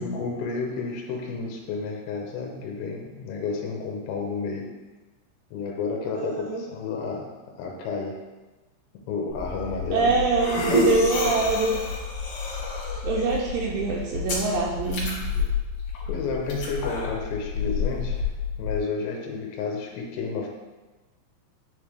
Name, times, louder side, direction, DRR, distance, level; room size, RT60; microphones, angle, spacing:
voice 1, 0.0-4.7 5.5-8.2 8.9-10.1 16.1-18.3 18.6-20.5, left 4 dB, 80° left, 0 dB, 2.5 m, -31 dB
voice 2, 6.1-6.6 9.9-11.8 13.0-15.2, right 4 dB, 85° right, -2 dB, 2.5 m, -24 dB
sound 1, 9.3-18.8, left 4 dB, 60° left, 2.7 m, -29 dB
9.7 x 3.6 x 3.3 m, 1.2 s
omnidirectional pair, 5.5 m